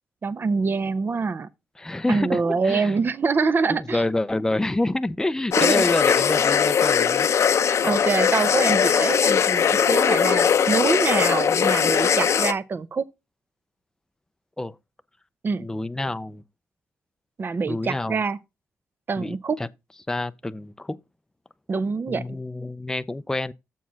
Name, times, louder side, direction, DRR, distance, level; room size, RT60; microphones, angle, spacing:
voice 1, 0.2-1.5 2.1-4.0 5.6-5.8 7.8-13.1 15.4-15.7 17.4-18.4 19.1-19.6 21.7-22.4, right 4 dB, 40° right, 0.6 m, -25 dB
voice 2, 1.8-3.0 3.7-7.3 14.6-14.7 15.6-16.4 17.7-18.2 19.2-19.7 20.1-21.0 22.1-23.5, left 2 dB, 10° left, 0.5 m, -27 dB
sound 1, 5.5-12.5, left 7 dB, 60° left, 0.6 m, -20 dB
7.2 x 4.6 x 5.6 m
cardioid pair, 90°, 5 cm